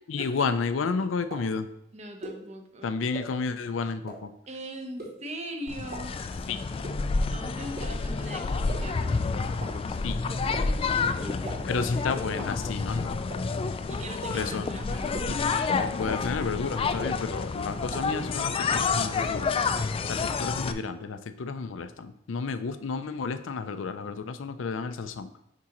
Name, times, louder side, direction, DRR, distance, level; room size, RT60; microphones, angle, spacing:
voice 1, 0.1-1.7 2.8-4.3 6.5-6.6 10.0-10.2 11.7-13.1 14.3-14.7 15.3-19.5 20.0-25.3, left 4 dB, 90° left, 10 dB, 0.5 m, -31 dB
sound 1, 1.3-1.4 2.2-2.3 3.1-3.2 4.1-4.2 5.0-5.1 5.9-6.0 6.8-6.9 7.8-7.9 8.7-8.8 9.6-9.7 10.5-10.6 11.4-11.5 12.4-12.5 13.3-13.4 14.2-14.3 15.1-15.2 16.1-16.2 17.0-17.1 17.9-18.0, right 2 dB, 55° right, 2.5 m, -37 dB
voice 2, 1.9-2.9 4.5-6.1 7.3-9.3 11.2-12.2 13.9-15.2, right 1 dB, 35° right, 4 dB, 0.8 m, -40 dB
sound 2, 5.7-20.7, left 4 dB, 30° left, 0.3 m, -29 dB
9.7 x 3.7 x 3.0 m, 0.79 s
head